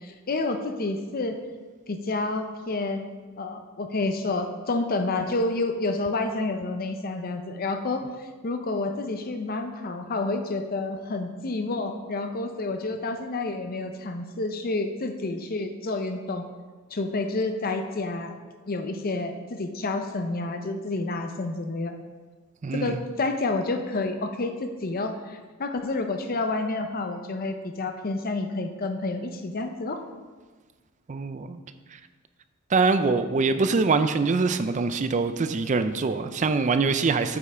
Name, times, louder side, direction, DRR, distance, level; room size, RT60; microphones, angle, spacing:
voice 1, 0.0-1.4 1.9-3.1 3.4-16.4 16.9-18.3 18.7-22.0 22.7-30.0, left 2 dB, 45° left, 6 dB, 0.6 m, -29 dB
voice 2, 22.6-23.0 31.1-31.6 32.7-37.4, right 4 dB, 35° right, 10 dB, 0.4 m, -24 dB
8.0 x 5.4 x 5.0 m, 1.4 s
head